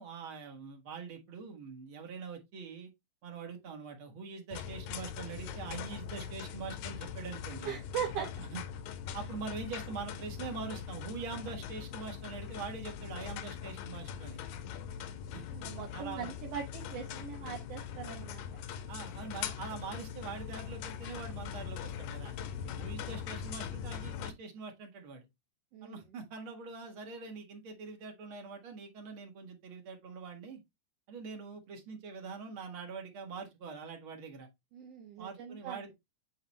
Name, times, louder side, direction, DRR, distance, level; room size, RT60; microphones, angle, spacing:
voice 1, 0.0-2.9 3.2-7.8 8.2-8.3 8.5-8.6 9.1-14.4 15.3-15.4 15.9-16.3 18.9-22.4 22.6-25.3 25.8-30.6 31.1-34.5 35.2-35.9, right 5 dB, 45° right, 2.0 m, -43 dB
sound 1, 4.5-24.3, left 8 dB, 85° left, 2.4 m, -41 dB
voice 2, 7.6-8.3 15.3-18.4 25.7-26.0 34.7-35.8, right 8 dB, 65° right, 1.6 m, -40 dB
8.6 x 3.8 x 3.1 m
omnidirectional pair, 3.9 m